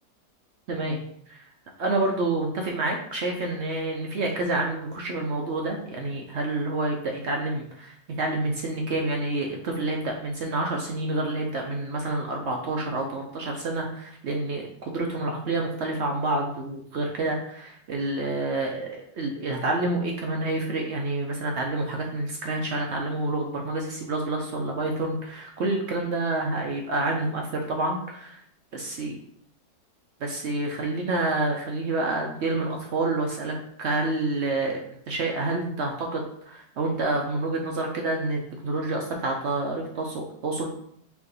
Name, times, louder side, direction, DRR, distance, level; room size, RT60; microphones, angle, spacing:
voice 1, 0.7-1.4 1.8-28.4 28.7-29.2 30.2-40.7, right 2 dB, 65° right, 1 dB, 0.7 m, -28 dB
4.7 x 2.6 x 3.9 m, 0.69 s
omnidirectional pair, 1.7 m